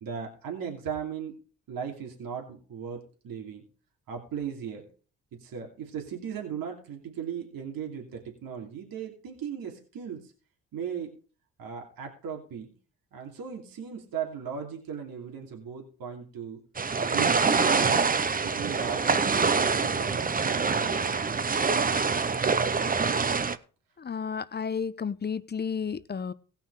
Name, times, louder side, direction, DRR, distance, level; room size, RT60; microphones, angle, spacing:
voice 1, 0.0-1.4 1.7-3.6 4.1-4.9 5.3-10.3 10.7-11.1 11.6-12.7 13.1-16.6 17.1-18.1 18.4-21.3, right 7 dB, 75° right, 1 dB, 2.8 m, -37 dB
sound 1, 16.8-23.6, right 5 dB, 25° right, 0.8 m, -25 dB
voice 2, 24.0-26.3, left 6 dB, 30° left, 16 dB, 0.7 m, -32 dB
17.0 x 5.7 x 4.9 m, 0.38 s
cardioid pair, 75°, 35 cm